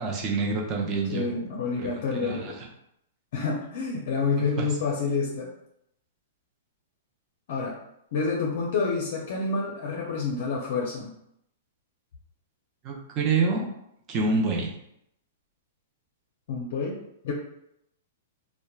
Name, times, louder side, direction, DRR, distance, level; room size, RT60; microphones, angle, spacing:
voice 1, 0.0-1.3 1.8-2.5 4.4-4.7 12.8-13.6 14.1-14.7, right 4 dB, 30° right, -1 dB, 0.6 m, -27 dB
voice 2, 1.1-2.6 3.3-5.5 7.5-7.8 8.1-11.1 16.5-17.0 17.2-17.3, left 4 dB, 60° left, -2 dB, 0.5 m, -28 dB
2.9 x 2.1 x 2.3 m, 0.77 s
hypercardioid pair, 150°, 0 cm